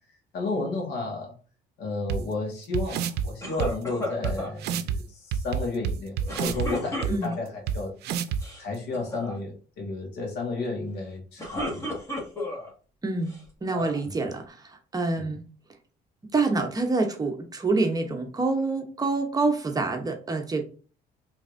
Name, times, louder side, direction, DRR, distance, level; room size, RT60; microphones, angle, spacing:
voice 1, 0.3-1.3 1.8-8.0 8.6-12.0 15.2-15.3, left 3 dB, 80° left, 1.7 m, -32 dB
sound 1, 2.1-2.2 2.7-3.3 3.6-3.7 4.2-4.3 4.6-5.0 5.3-6.7 7.0-7.1 7.7-7.8 8.0-8.4, right 8 dB, 75° right, 0.5 m, -27 dB
sound 2, 3.4-4.6 6.3-7.6 8.3-8.6 8.9-9.3 11.2-12.7 13.3-14.0, left 1 dB, 20° left, 1.7 m, -34 dB
voice 2, 13.0-13.3 13.6-14.6 14.9-15.4 16.3-20.6, right 3 dB, 20° right, 0.9 m, -26 dB
4.7 x 3.4 x 2.6 m
cardioid pair, 110°, 17 cm